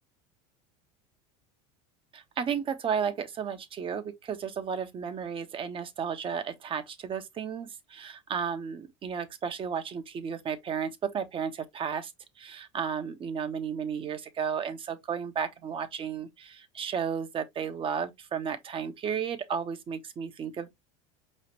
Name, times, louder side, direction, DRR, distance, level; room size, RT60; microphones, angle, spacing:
voice 1, 2.1-12.1 12.4-20.7, right 7 dB, 35° right, 0.9 m, -33 dB
4.9 x 3.2 x 2.9 m
supercardioid pair, 110°, 16 cm